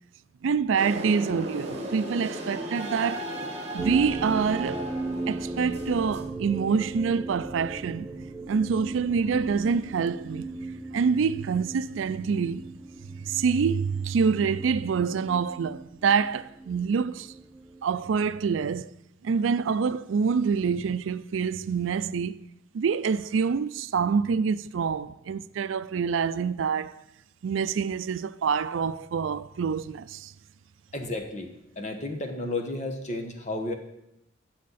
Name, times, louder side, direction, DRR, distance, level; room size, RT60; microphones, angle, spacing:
voice 1, 0.4-3.2 3.7-4.9 5.3-8.1 8.5-10.5 10.9-12.6 13.2-17.3 17.8-18.9 19.2-22.4 22.7-26.9 27.4-30.3, right 6 dB, 85° right, 0.4 m, -26 dB
sound 1, 0.8-6.2, right 1 dB, 35° right, 1.6 m, -36 dB
sound 2, 3.8-18.7, right 2 dB, 10° right, 0.4 m, -37 dB
voice 2, 30.9-31.5 31.8-33.7, left 2 dB, 35° left, 1.2 m, -32 dB
16.0 x 6.4 x 4.2 m
head